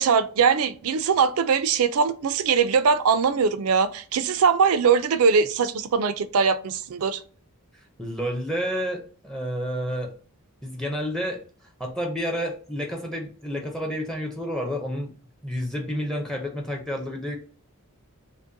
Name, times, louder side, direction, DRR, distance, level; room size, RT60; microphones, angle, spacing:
voice 1, 0.0-7.2, right 5 dB, 70° right, 0.4 m, -21 dB
voice 2, 8.0-10.1 10.6-11.4 11.8-15.1 15.4-17.4, equal, ahead, 0.5 m, -30 dB
5.2 x 2.1 x 2.6 m
head